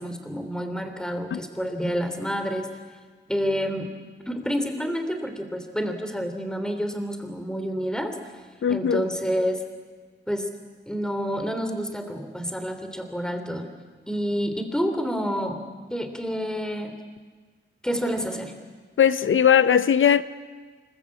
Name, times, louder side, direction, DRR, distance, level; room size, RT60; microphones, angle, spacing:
voice 1, 0.0-2.7 3.3-3.9 4.3-8.1 8.7-9.6 10.3-10.5 10.9-13.7 14.1-15.6 15.9-17.0 17.8-18.5, equal, 5° left, 3.1 m, -28 dB
voice 2, 8.6-9.1 19.0-20.2, left 8 dB, 90° left, 0.7 m, -19 dB
25.5 x 21.5 x 8.5 m
wide cardioid pair, 100°, 20 cm